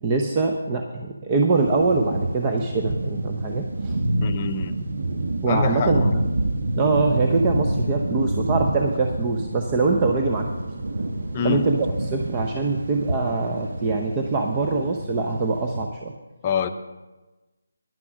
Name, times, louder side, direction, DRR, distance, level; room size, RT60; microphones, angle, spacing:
voice 1, 0.0-4.0 5.4-6.3 6.8-10.5 11.4-11.9 12.1-16.1, right 3 dB, 25° right, 2 dB, 0.8 m, -23 dB
sound 1, 1.5-15.8, right 1 dB, 55° right, 1.2 m, -27 dB
voice 2, 4.2-4.9 5.5-6.1 11.3-11.7 16.4-16.7, left 7 dB, 25° left, 6 dB, 0.7 m, -26 dB
10.5 x 9.7 x 6.1 m, 1.1 s
figure-of-eight pair, 155°, 0 cm